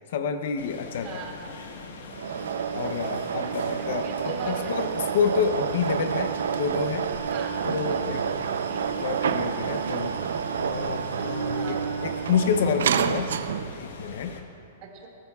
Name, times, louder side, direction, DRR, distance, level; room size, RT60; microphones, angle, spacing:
voice 1, 0.0-1.2 2.7-7.1 7.6-8.2 8.9-10.1 10.6-11.8 12.0-13.3 13.8-14.3, left 6 dB, 55° left, 8 dB, 0.7 m, -28 dB
sound 1, 0.6-14.4, left 3 dB, 80° left, 1.4 m, -42 dB
voice 2, 1.0-1.5 2.7-3.2 3.7-4.7 7.3-7.6 7.9-9.1 11.5-11.9 14.8-15.1, right 5 dB, 30° right, -1 dB, 2.2 m, -41 dB
sound 2, 2.1-13.8, right 7 dB, 80° right, 0.6 m, -29 dB
20.5 x 13.0 x 2.4 m, 2.8 s
hypercardioid pair, 170°, 0 cm